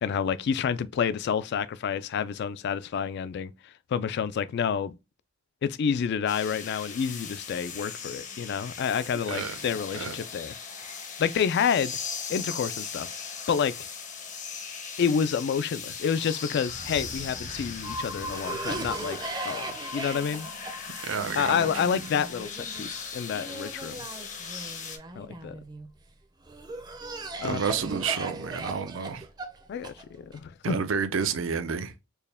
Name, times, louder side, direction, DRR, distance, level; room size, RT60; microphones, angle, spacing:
voice 1, 0.0-3.5 3.9-4.9 5.6-10.5 11.2-12.0 12.3-13.1 13.5-13.7 15.0-19.2 19.4-20.5 21.4-24.1 25.2-25.5 27.4-27.6 29.7-30.8, left 7 dB, 55° left, 0.3 m, -28 dB
sound 1, 6.3-25.0, left 6 dB, 40° left, 0.7 m, -39 dB
voice 2, 9.3-9.6 9.9-10.2 21.0-21.7 27.4-29.2 30.6-31.9, right 6 dB, 75° right, 0.5 m, -30 dB
Cough, 16.7-25.9 26.5-30.4, right 2 dB, 20° right, 0.5 m, -39 dB
sound 2, 17.8-23.5, left 1 dB, 75° left, 0.8 m, -41 dB
4.4 x 2.2 x 3.3 m
head